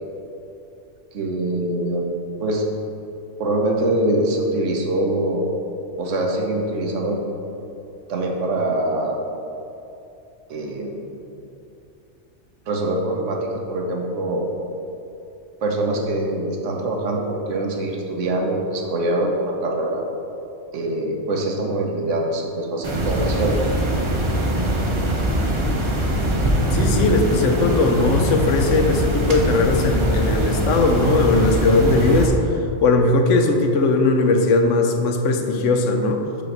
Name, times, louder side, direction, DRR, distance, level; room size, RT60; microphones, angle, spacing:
voice 1, 1.1-2.1 2.4-2.6 3.4-5.5 6.0-7.2 8.1-9.2 10.5-11.3 12.7-14.5 15.6-20.0 20.7-23.6, right 1 dB, 90° right, 1 dB, 1.2 m, -24 dB
Tape Hiss, 22.8-32.3, right 1 dB, 35° right, 0.6 m, -22 dB
voice 2, 26.7-32.3 32.8-36.2, left 3 dB, 85° left, 4 dB, 1.0 m, -19 dB
4.9 x 3.9 x 5.8 m, 2.7 s
omnidirectional pair, 1.2 m